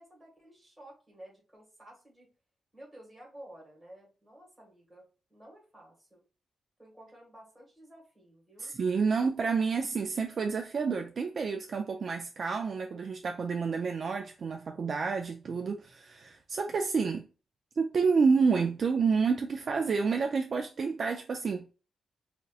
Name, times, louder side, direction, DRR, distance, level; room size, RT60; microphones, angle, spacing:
voice 1, 0.0-2.3 2.7-5.0 5.3-6.2 6.8-8.7, right 1 dB, 10° right, 1.7 m, -53 dB
voice 2, 8.6-17.3 17.8-21.8, right 5 dB, 45° right, 0.3 m, -29 dB
5.2 x 2.8 x 2.3 m
wide cardioid pair, 170°, 0 cm